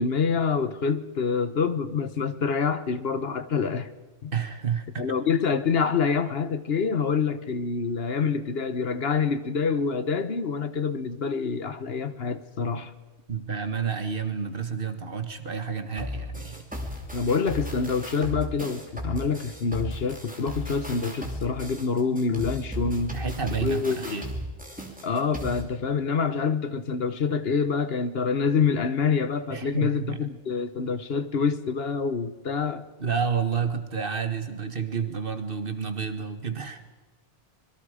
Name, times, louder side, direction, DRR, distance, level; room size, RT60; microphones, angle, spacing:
voice 1, 0.0-3.9 4.2-4.3 5.0-12.9 17.1-23.2 23.6-24.3 25.0-32.8, left 5 dB, 65° left, 1.2 m, -26 dB
voice 2, 4.3-5.1 13.3-16.7 23.1-24.3 29.5-30.3 33.0-36.8, right 6 dB, 55° right, 1.7 m, -30 dB
sound 1, 16.0-25.6, equal, 5° right, 3.1 m, -35 dB
25.5 x 22.0 x 5.0 m
omnidirectional pair, 1.1 m